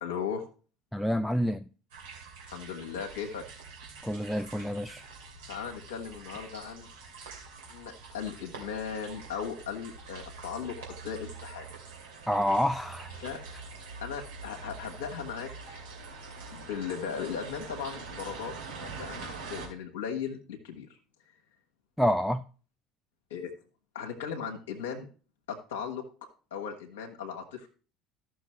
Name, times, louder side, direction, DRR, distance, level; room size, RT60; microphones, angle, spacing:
voice 1, 0.0-0.4 2.5-3.4 5.5-6.9 7.7-11.7 13.2-13.5 14.0-15.8 16.5-20.9 23.3-23.5 23.9-25.1 25.5-27.7, left 7 dB, 70° left, 1.3 m, -37 dB
voice 2, 0.9-1.6 4.0-5.0 12.3-13.1 22.0-22.4, equal, ahead, 0.4 m, -28 dB
sound 1, 1.9-19.7, right 4 dB, 70° right, 2.5 m, -45 dB
14.0 x 6.2 x 3.2 m
figure-of-eight pair, 65°, 0 cm